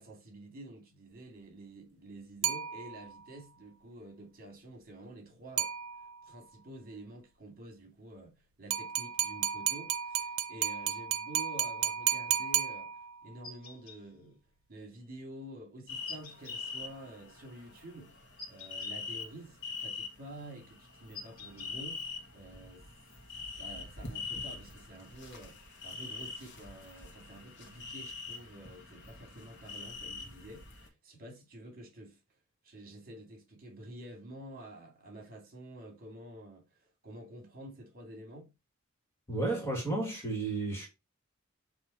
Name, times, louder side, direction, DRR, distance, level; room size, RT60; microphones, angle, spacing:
voice 1, 0.0-5.7 6.2-14.4 14.7-18.2 18.5-22.8 23.6-32.2 32.6-38.5, right 1 dB, 45° right, 2.4 m, -49 dB
sound 1, 2.4-3.3 5.6-6.3 8.7-13.3, right 11 dB, 85° right, 0.7 m, -33 dB
sound 2, 13.4-14.0 16.1-16.6 18.4-18.9 21.1-21.7, left 4 dB, 75° left, 1.7 m, -47 dB
sound 3, 15.9-30.9, left 4 dB, 60° left, 1.6 m, -44 dB
voice 2, 39.3-40.9, right 2 dB, 15° left, 2.4 m, -32 dB
7.7 x 3.2 x 4.3 m
head